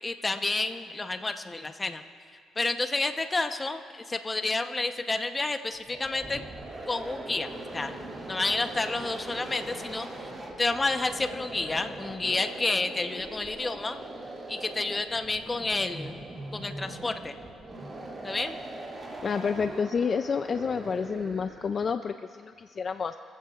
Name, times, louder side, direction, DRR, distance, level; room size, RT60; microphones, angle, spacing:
voice 1, 0.0-2.0 2.6-6.4 6.9-7.9 8.3-10.3 10.6-14.0 14.5-16.1 16.5-17.4 18.2-18.6, left 3 dB, 25° left, 7 dB, 0.9 m, -30 dB
sound 1, 5.7-21.8, right 2 dB, 30° right, 2.5 m, -41 dB
voice 2, 19.2-23.2, left 6 dB, 45° left, 9 dB, 0.4 m, -29 dB
24.5 x 15.0 x 2.4 m, 2.2 s
cardioid pair, 90°, 0 cm